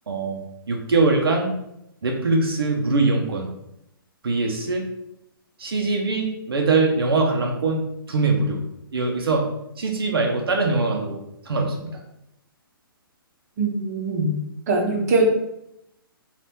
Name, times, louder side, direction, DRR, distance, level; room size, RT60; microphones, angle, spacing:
voice 1, 0.1-1.5 2.0-3.5 4.2-4.9 5.6-8.6 8.9-9.5 9.8-11.2 11.5-12.0, right 3 dB, 85° right, 1 dB, 0.6 m, -22 dB
voice 2, 13.6-14.4 14.7-15.3, right 2 dB, 45° right, 2 dB, 0.7 m, -21 dB
2.8 x 2.5 x 3.4 m, 0.81 s
hypercardioid pair, 150°, 12 cm